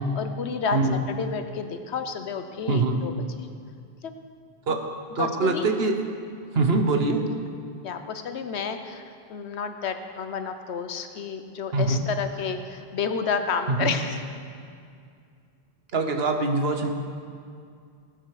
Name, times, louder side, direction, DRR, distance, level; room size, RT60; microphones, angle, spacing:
voice 1, 0.1-3.2 4.0-4.1 5.2-5.7 7.8-14.2, left 6 dB, 80° left, 8 dB, 1.1 m, -30 dB
voice 2, 0.7-1.0 2.7-3.0 4.7-4.8 5.1-5.9 6.5-7.2 11.7-12.0 13.7-13.9 15.9-16.9, right 3 dB, 65° right, 5 dB, 1.3 m, -23 dB
18.0 x 8.0 x 4.9 m, 2.3 s
omnidirectional pair, 1.1 m